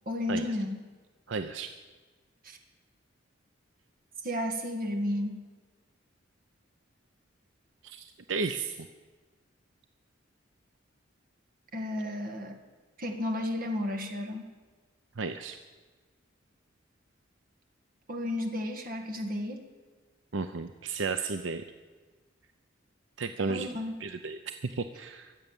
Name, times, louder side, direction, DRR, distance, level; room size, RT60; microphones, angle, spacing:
voice 1, 0.1-0.7 2.4-2.6 4.2-5.4 11.7-12.6 13.0-14.5 18.1-19.7 23.5-23.9, left 1 dB, 45° right, 5 dB, 1.8 m, -33 dB
voice 2, 1.3-1.7 7.8-8.9 15.2-15.6 20.3-21.6 23.2-23.7 24.0-25.3, right 4 dB, 75° right, 9 dB, 0.6 m, -33 dB
22.5 x 8.0 x 7.2 m, 1.4 s
head